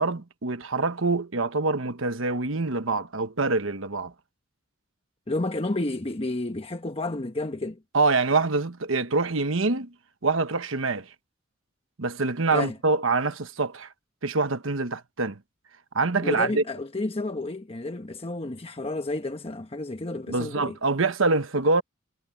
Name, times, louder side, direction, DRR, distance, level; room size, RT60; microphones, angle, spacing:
voice 1, 0.0-4.1 7.9-9.9 10.2-11.1 12.0-13.9 14.2-15.4 15.9-16.6 20.3-21.8, right 3 dB, 75° right, 1.2 m, -25 dB
voice 2, 5.3-7.8 12.5-12.8 16.2-20.8, left 2 dB, 30° left, 1.1 m, -31 dB
head